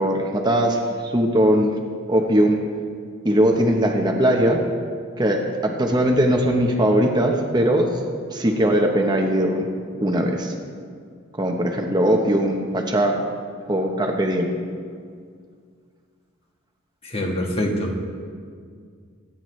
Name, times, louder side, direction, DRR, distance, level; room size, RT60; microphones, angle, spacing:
voice 1, 0.0-1.7 2.1-2.6 3.2-4.6 5.2-7.9 8.3-9.7 10.0-10.5 11.4-13.2 13.7-14.5, right 1 dB, 20° right, 2 dB, 1.0 m, -20 dB
voice 2, 17.0-18.1, equal, 30° left, 1 dB, 1.5 m, -25 dB
24.0 x 9.6 x 3.2 m, 2.1 s
head